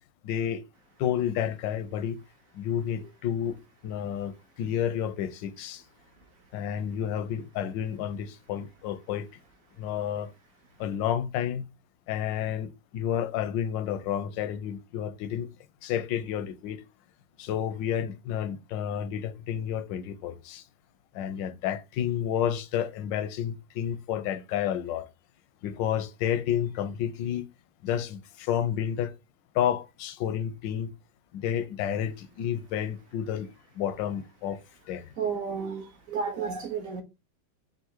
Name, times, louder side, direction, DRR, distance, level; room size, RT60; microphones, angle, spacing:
voice 1, 0.2-0.6 1.0-2.2 2.5-3.6 3.8-5.8 6.5-9.3 9.8-10.3 10.8-11.6 12.1-15.5 15.8-16.8 17.4-20.6 21.1-25.1 25.6-27.5 27.8-29.1 29.5-30.9 31.3-33.5 33.8-34.6 34.9-35.1, left 9 dB, 85° left, 1.3 m, -30 dB
voice 2, 35.2-37.0, right 5 dB, 60° right, 1.0 m, -32 dB
3.7 x 2.5 x 4.4 m
omnidirectional pair, 1.9 m